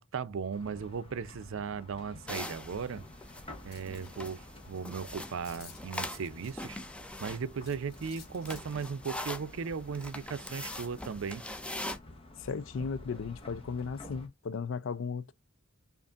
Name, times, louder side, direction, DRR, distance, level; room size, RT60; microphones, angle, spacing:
voice 1, 0.0-3.0 3.6-6.8 7.2-11.4, right 6 dB, 65° right, 0.5 m, -37 dB
sound 1, 0.5-14.3, left 1 dB, 25° left, 1.0 m, -52 dB
sound 2, 2.3-12.0, left 1 dB, 5° left, 0.5 m, -43 dB
sound 3, 3.7-4.1 4.6-4.7 4.9-5.0 5.4-6.8 7.6-8.9, left 6 dB, 50° left, 1.6 m, -53 dB
voice 2, 12.4-15.3, left 5 dB, 65° left, 0.4 m, -36 dB
5.1 x 2.5 x 2.3 m
head